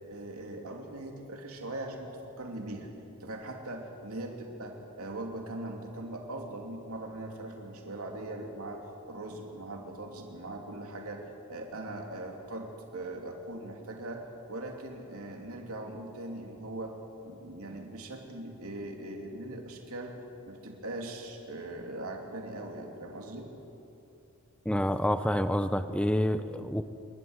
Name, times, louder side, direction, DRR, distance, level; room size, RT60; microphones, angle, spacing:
voice 1, 0.1-2.9 3.2-17.0 17.2-20.2 20.4-23.5, right 1 dB, 80° right, 2 dB, 2.9 m, -40 dB
voice 2, 24.7-26.8, equal, 5° left, 11 dB, 0.7 m, -28 dB
27.0 x 12.5 x 9.6 m, 2.7 s
head